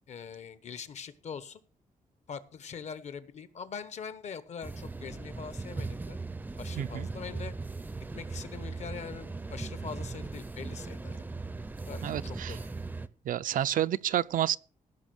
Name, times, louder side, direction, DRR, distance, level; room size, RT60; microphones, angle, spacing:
voice 1, 0.1-1.6 2.3-6.2 6.6-7.5 8.1-11.2 11.9-12.6, left 6 dB, 55° left, 1.2 m, -43 dB
sound 1, 4.6-13.1, right 3 dB, 10° right, 0.5 m, -38 dB
voice 2, 6.8-7.1 12.0-12.6 13.3-14.6, right 11 dB, 80° right, 0.5 m, -29 dB
16.0 x 6.1 x 6.4 m
wide cardioid pair, 165°, 14 cm